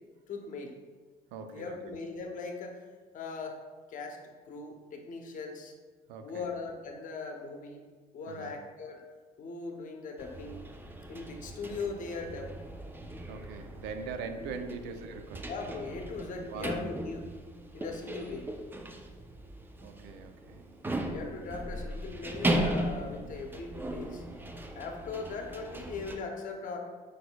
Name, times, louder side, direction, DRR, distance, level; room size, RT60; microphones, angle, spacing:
voice 1, 0.3-0.7 1.5-2.8 3.1-3.6 3.9-4.2 4.5-5.7 6.2-7.8 8.1-9.0 9.4-10.6 11.1-12.6 14.4-14.5 15.4-17.3 17.7-18.5 21.1-24.2 24.7-26.8, left 4 dB, 50° left, 2 dB, 0.7 m, -39 dB
voice 2, 1.3-2.0 6.1-6.5 8.3-8.6 13.3-15.5 16.5-16.7 19.8-21.1 23.2-23.3, right 5 dB, 90° right, 6 dB, 0.5 m, -42 dB
sound 1, 10.2-26.1, right 1 dB, 10° right, 0.4 m, -37 dB
4.8 x 4.3 x 2.2 m, 1.4 s
cardioid pair, 110°, 17 cm